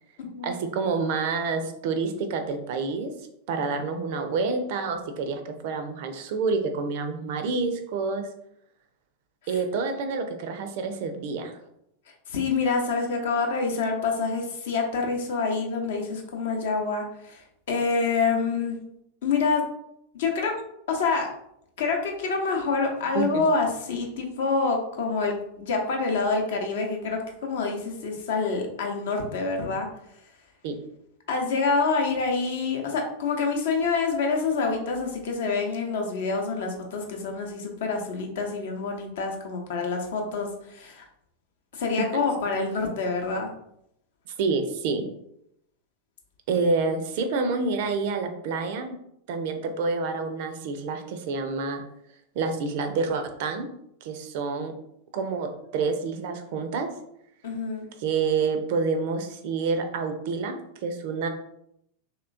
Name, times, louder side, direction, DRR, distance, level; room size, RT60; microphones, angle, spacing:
voice 1, 0.4-3.1 3.5-8.3 9.5-11.6 23.1-23.4 30.6-30.7 42.0-42.1 44.4-45.0 46.5-49.0 49.3-51.8 52.4-53.7 54.0-54.7 55.1-55.5 55.7-56.9 58.0-60.6 60.8-61.3, right 4 dB, 50° right, 7 dB, 0.4 m, -28 dB
voice 2, 12.3-18.8 19.2-19.6 20.1-20.5 20.9-21.3 21.8-29.9 31.3-41.0 41.7-43.5 57.4-57.9, left 4 dB, 55° left, 2 dB, 0.7 m, -27 dB
3.1 x 2.9 x 2.5 m, 0.76 s
figure-of-eight pair, 90°, 0 cm